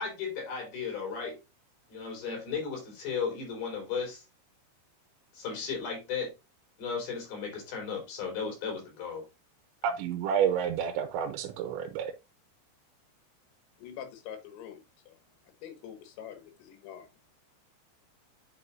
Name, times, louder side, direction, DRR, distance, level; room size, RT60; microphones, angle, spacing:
voice 1, 0.0-1.4 1.9-4.3 5.3-6.3 6.8-9.3, left 5 dB, 55° left, 5.4 m, -35 dB
voice 2, 9.8-12.1, right 8 dB, 90° right, 3.1 m, -29 dB
voice 3, 13.8-15.2 15.6-17.1, left 9 dB, 80° left, 3.8 m, -45 dB
9.6 x 5.4 x 2.5 m
omnidirectional pair, 5.3 m